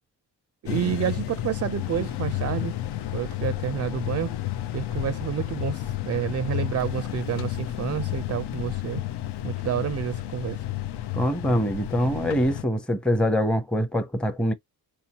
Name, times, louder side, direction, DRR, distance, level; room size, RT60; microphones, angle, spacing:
voice 1, 0.6-2.8 3.1-4.4 4.7-9.0 9.4-10.6, right 9 dB, 40° right, 0.4 m, -29 dB
sound 1, 0.7-12.6, left 14 dB, 70° left, 0.6 m, -31 dB
voice 2, 11.1-14.5, equal, ahead, 0.7 m, -24 dB
4.4 x 2.8 x 2.8 m
cardioid pair, 70°, 42 cm